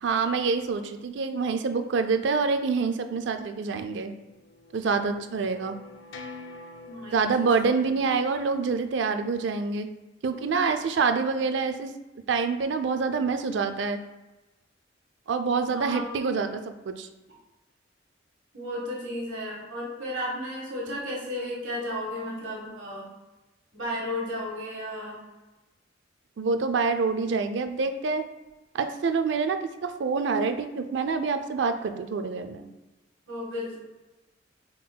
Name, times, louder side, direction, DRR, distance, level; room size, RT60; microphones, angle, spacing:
voice 1, 0.0-4.1 4.7-5.8 7.1-9.9 10.2-11.9 12.3-14.0 15.3-16.5 16.9-17.1 26.4-28.3 28.7-32.7, right 4 dB, 70° right, 8 dB, 0.4 m, -26 dB
sound 1, 4.0-7.5, left 3 dB, 75° left, 0.4 m, -46 dB
voice 2, 6.8-8.0 15.7-16.3 18.5-23.1 23.7-25.2 33.3-33.8, left 1 dB, 90° right, -3 dB, 1.4 m, -34 dB
5.7 x 3.8 x 2.2 m, 1.1 s
head